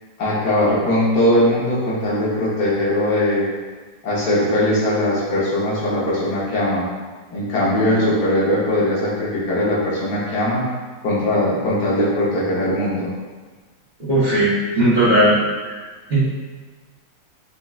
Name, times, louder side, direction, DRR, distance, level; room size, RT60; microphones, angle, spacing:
voice 1, 0.2-3.4 4.0-6.8 7.3-10.7 11.0-13.1, left 1 dB, 80° left, -7 dB, 1.5 m, -20 dB
voice 2, 14.1-15.4 15.6-15.7 16.1-16.2, right 1 dB, 35° right, -10 dB, 0.9 m, -16 dB
5.9 x 2.2 x 2.3 m, 1.4 s
omnidirectional pair, 1.8 m